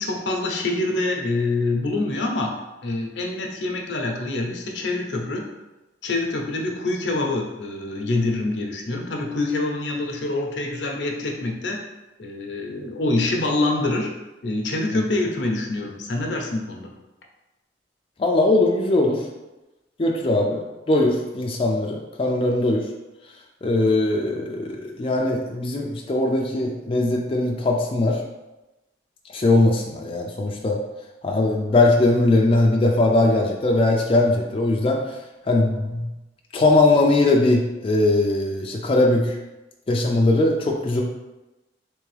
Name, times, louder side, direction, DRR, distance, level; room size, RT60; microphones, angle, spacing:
voice 1, 0.0-2.6 2.8-5.5 6.0-11.8 12.2-14.1 14.4-16.9, left 2 dB, 75° left, 1 dB, 0.7 m, -25 dB
voice 2, 18.2-19.2 20.0-20.6 20.9-22.9 23.6-28.2 29.3-30.8 31.2-35.0 35.5-36.1 36.5-39.4 39.9-41.0, left 2 dB, 30° left, 0 dB, 0.4 m, -20 dB
3.5 x 3.3 x 3.2 m, 1.0 s
head